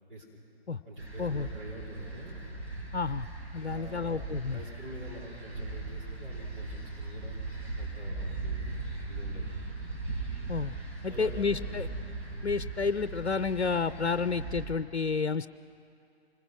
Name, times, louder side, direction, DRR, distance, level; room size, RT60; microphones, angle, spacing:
voice 1, 0.1-0.4 0.8-2.5 3.7-7.4 7.8-9.5 11.1-11.8, right 1 dB, 50° right, -3 dB, 4.4 m, -46 dB
sound 1, 1.0-14.7, right 3 dB, 90° right, 7.2 m, -38 dB
voice 2, 2.9-3.3 3.5-4.6 10.5-10.7 11.0-11.9 12.4-15.5, left 5 dB, 85° left, 14 dB, 0.6 m, -30 dB
25.5 x 21.0 x 6.2 m, 2.6 s
figure-of-eight pair, 130°, 32 cm